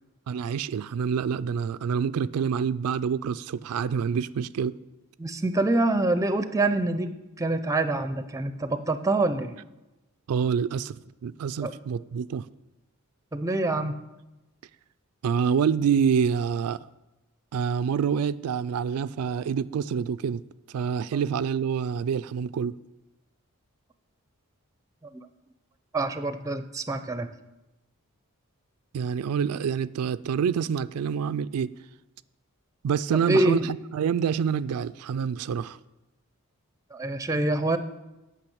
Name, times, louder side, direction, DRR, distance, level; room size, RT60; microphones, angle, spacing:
voice 1, 0.3-4.8 10.3-12.5 15.2-16.9 17.5-20.4 20.7-22.8 28.9-31.7 32.8-35.8, right 7 dB, 85° right, 0.3 m, -27 dB
voice 2, 5.2-7.1 7.4-9.6 11.6-11.7 13.3-13.9 25.1-25.3 25.9-27.3 33.1-33.7 36.9-37.8, right 2 dB, 15° right, 0.5 m, -26 dB
8.9 x 6.0 x 7.8 m
head